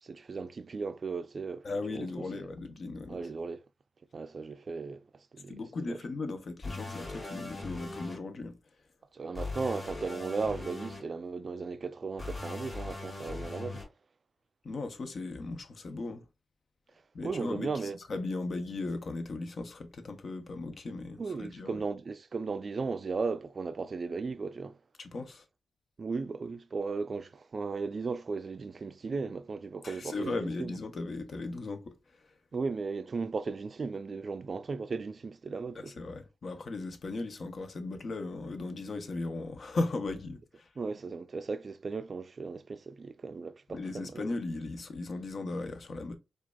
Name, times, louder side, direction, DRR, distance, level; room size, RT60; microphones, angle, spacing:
voice 1, 0.0-2.4 3.1-3.6 4.1-6.0 9.1-13.8 17.2-18.0 21.2-24.8 26.0-30.8 32.5-36.0 40.8-44.2, right 4 dB, 55° right, 0.3 m, -36 dB
voice 2, 1.6-3.3 5.5-8.6 14.6-16.3 17.1-21.8 25.0-25.4 29.8-32.0 35.8-40.7 43.7-46.1, left 3 dB, 60° left, 0.6 m, -37 dB
sound 1, 6.6-8.2 9.3-11.0 12.2-13.8, left 3 dB, 40° left, 2.2 m, -40 dB
4.6 x 2.4 x 2.2 m
supercardioid pair, 45°, 0 cm